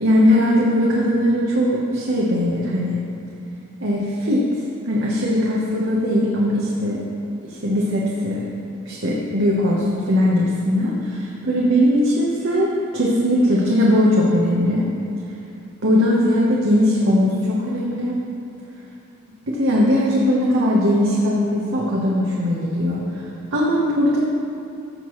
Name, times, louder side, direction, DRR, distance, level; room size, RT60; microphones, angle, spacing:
voice 1, 0.0-3.0 3.8-7.0 7.4-8.4 8.8-14.9 15.8-18.2 19.5-23.2 23.5-24.2, left 1 dB, 60° right, -5 dB, 1.1 m, -19 dB
14.0 x 6.8 x 3.2 m, 2.7 s
head